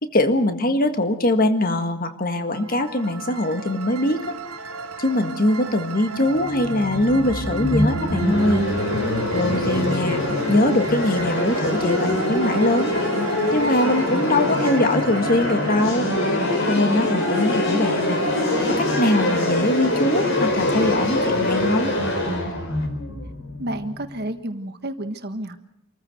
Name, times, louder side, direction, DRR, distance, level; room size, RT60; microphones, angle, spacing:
voice 1, 0.0-4.4 5.0-8.7 9.3-10.2 10.5-13.0 13.5-16.1 16.7-18.2 18.7-21.9, left 1 dB, 40° left, 7 dB, 1.7 m, -22 dB
sound 1, 2.5-17.3, right 4 dB, 80° right, 2.3 m, -36 dB
sound 2, 6.3-24.1, left 1 dB, 55° left, 4.5 m, -23 dB
voice 2, 23.6-25.6, right 1 dB, 45° right, 7 dB, 1.5 m, -30 dB
26.5 x 15.0 x 7.9 m, 0.83 s
head